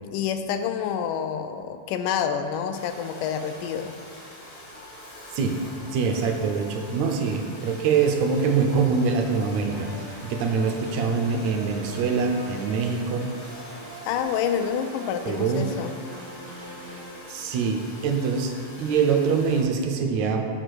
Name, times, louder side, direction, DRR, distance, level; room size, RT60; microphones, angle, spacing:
voice 1, 0.1-3.9 14.0-16.0, left 8 dB, 85° left, 8 dB, 2.1 m, -28 dB
Domestic sounds home sounds, 2.7-19.6, left 1 dB, 45° left, 0.7 m, -44 dB
voice 2, 5.8-13.3 15.3-15.7 17.3-18.5 18.8-20.5, right 5 dB, 75° right, 4 dB, 1.8 m, -24 dB
sound 1, 9.2-17.2, right 1 dB, 55° right, 1.0 m, -42 dB
6.7 x 4.8 x 6.1 m, 2.4 s
omnidirectional pair, 3.6 m